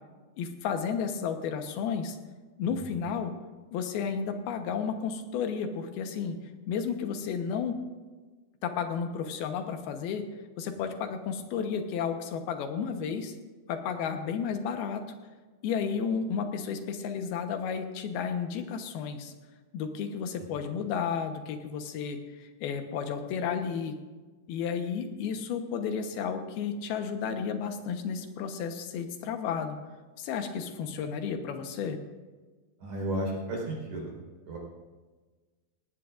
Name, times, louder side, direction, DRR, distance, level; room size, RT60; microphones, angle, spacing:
voice 1, 0.4-2.2 2.6-3.3 3.7-6.4 6.7-7.8 8.6-10.3 10.6-13.4 13.7-15.0 15.6-19.3 19.7-23.9 24.5-29.8 30.2-32.0, left 6 dB, 90° left, 6 dB, 3.1 m, -32 dB
voice 2, 32.8-34.0 34.5-34.6, right 1 dB, 70° right, -2 dB, 6.1 m, -33 dB
18.5 x 17.5 x 2.5 m, 1.3 s
omnidirectional pair, 4.3 m